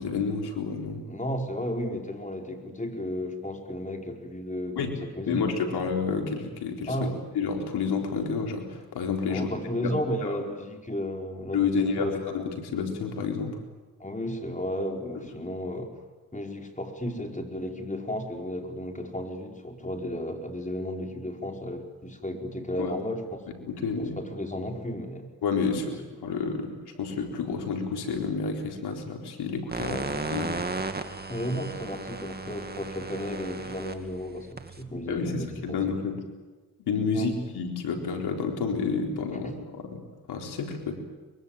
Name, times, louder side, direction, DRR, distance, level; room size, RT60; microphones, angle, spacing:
voice 1, 0.0-1.0 4.8-4.9 5.3-9.5 9.8-9.9 10.2-10.4 11.5-13.6 22.8-22.9 23.7-24.2 25.4-26.7 27.0-30.6 35.1-36.2 36.8-40.0 40.3-40.9, left 5 dB, 90° left, 2 dB, 4.2 m, -30 dB
voice 2, 1.1-5.5 6.9-7.2 9.3-12.4 14.0-15.9 16.3-23.4 24.0-25.3 25.8-25.9 29.8-30.1 31.3-35.8 37.1-37.3, equal, 20° left, 3 dB, 5.1 m, -33 dB
sound 1, 29.7-35.8, right 3 dB, 25° right, 2.3 m, -36 dB
23.5 x 23.0 x 9.1 m, 1.3 s
cardioid pair, 65°, 38 cm